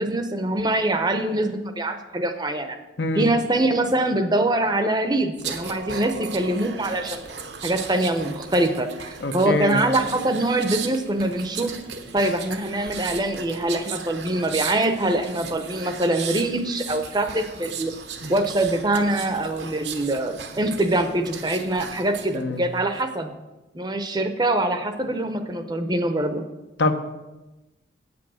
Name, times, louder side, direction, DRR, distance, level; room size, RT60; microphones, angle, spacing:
voice 1, 0.0-2.8 3.2-7.2 7.6-11.8 12.1-17.9 18.3-23.3 23.7-26.5, right 1 dB, 20° right, 8 dB, 0.7 m, -24 dB
sound 1, 5.4-22.4 22.8-23.0, right 6 dB, 70° right, 1.0 m, -36 dB
voice 2, 9.2-9.8 22.3-22.6 26.8-26.9, left 2 dB, 70° left, 7 dB, 0.9 m, -24 dB
8.6 x 8.1 x 6.2 m, 1.1 s
head